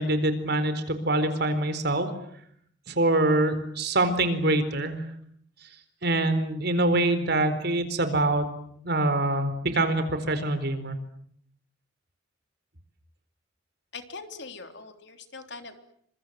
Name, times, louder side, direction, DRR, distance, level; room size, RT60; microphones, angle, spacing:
voice 1, 0.0-2.1 2.9-5.0 6.0-8.5 8.8-11.0, right 2 dB, 60° right, 10 dB, 4.3 m, -25 dB
voice 2, 13.9-15.8, left 4 dB, 65° left, 7 dB, 3.5 m, -42 dB
29.5 x 26.0 x 7.7 m, 0.66 s
head